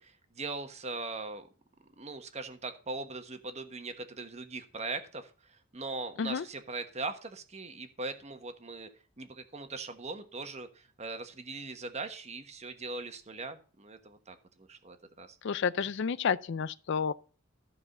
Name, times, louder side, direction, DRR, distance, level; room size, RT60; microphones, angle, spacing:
voice 1, 0.0-1.5 2.0-8.9 9.2-15.3, right 3 dB, 35° right, 1.3 m, -40 dB
voice 2, 15.4-17.1, left 6 dB, 60° left, 0.4 m, -30 dB
14.0 x 4.8 x 6.6 m
head